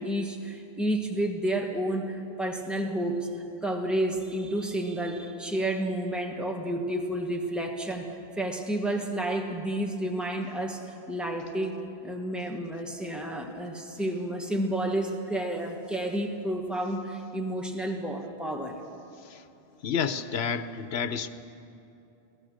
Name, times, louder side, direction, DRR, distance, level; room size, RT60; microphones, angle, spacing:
voice 1, 0.0-3.3 3.6-8.1 8.4-18.8, right 1 dB, ahead, 1 dB, 1.7 m, -30 dB
voice 2, 19.8-21.3, left 6 dB, 85° left, 11 dB, 1.1 m, -29 dB
24.5 x 17.5 x 6.5 m, 2.8 s
omnidirectional pair, 1.0 m